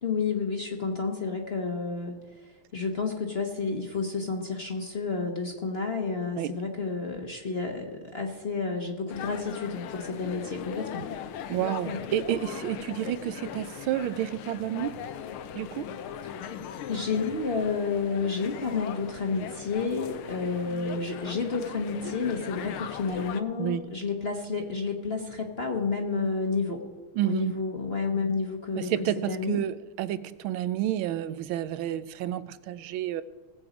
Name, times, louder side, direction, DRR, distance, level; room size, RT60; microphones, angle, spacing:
voice 1, 0.0-2.1 2.7-11.0 11.8-12.0 16.9-26.8 27.2-29.6, left 4 dB, 40° left, 2 dB, 1.0 m, -30 dB
sound 1, 9.1-23.4, left 8 dB, 80° left, 1.6 m, -39 dB
voice 2, 11.5-15.0 15.5-16.0 23.6-24.0 27.1-27.5 28.7-33.2, right 12 dB, 75° right, 14 dB, 1.4 m, -30 dB
19.0 x 7.7 x 5.1 m, 1.3 s
omnidirectional pair, 2.3 m